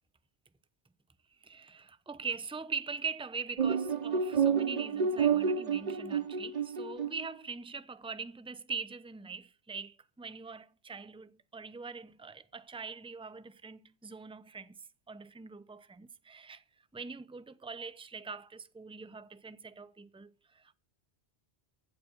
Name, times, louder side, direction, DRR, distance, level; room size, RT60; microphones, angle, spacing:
voice 1, 1.4-16.6 16.9-20.7, right 5 dB, 5° right, 0.7 m, -42 dB
sound 1, 3.6-7.2, right 6 dB, 40° right, 0.9 m, -29 dB
15.5 x 8.7 x 5.4 m
omnidirectional pair, 1.1 m